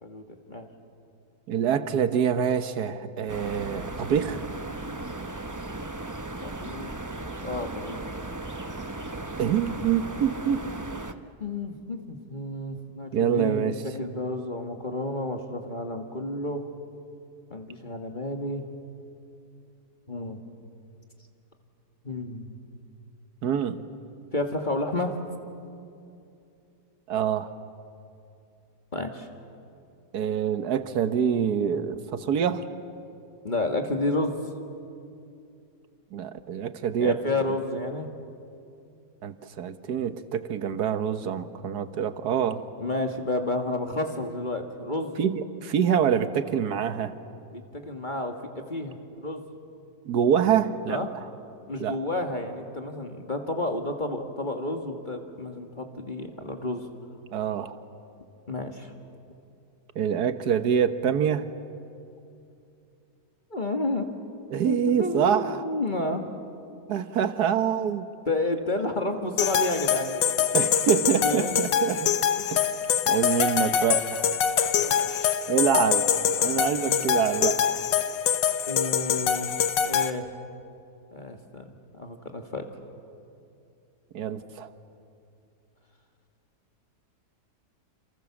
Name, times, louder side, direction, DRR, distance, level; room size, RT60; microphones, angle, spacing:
voice 1, 0.0-0.7 6.4-6.9 7.4-8.0 11.4-16.7 17.5-18.6 20.1-20.4 22.0-22.6 24.3-25.1 28.9-29.3 33.4-34.4 37.0-38.1 42.8-45.1 47.5-49.4 50.9-51.1 51.7-56.9 58.5-58.9 63.5-64.1 64.7-66.3 68.3-70.2 71.2-71.7 72.4-72.5 74.7-75.4 76.7-77.1 78.7-79.6 79.9-80.3 81.1-81.7 81.9-82.6, left 2 dB, 25° left, 4 dB, 1.9 m, -31 dB
voice 2, 1.5-4.4 9.4-10.6 13.1-13.8 23.4-23.8 27.1-27.5 30.1-32.6 36.1-37.2 39.2-42.6 45.2-47.1 50.0-51.0 51.8-52.0 57.3-57.8 59.9-61.5 64.5-65.6 66.9-68.0 70.5-72.1 72.5-72.7 73.1-74.3 75.5-76.0 76.4-77.8 84.1-84.7, right 8 dB, 65° right, 11 dB, 1.6 m, -25 dB
sound 1, 3.3-11.1, right 2 dB, 20° right, 0.5 m, -36 dB
sound 2, 69.4-80.1, left 8 dB, 90° left, 1.7 m, -24 dB
28.5 x 28.5 x 7.2 m, 2.6 s
omnidirectional pair, 1.9 m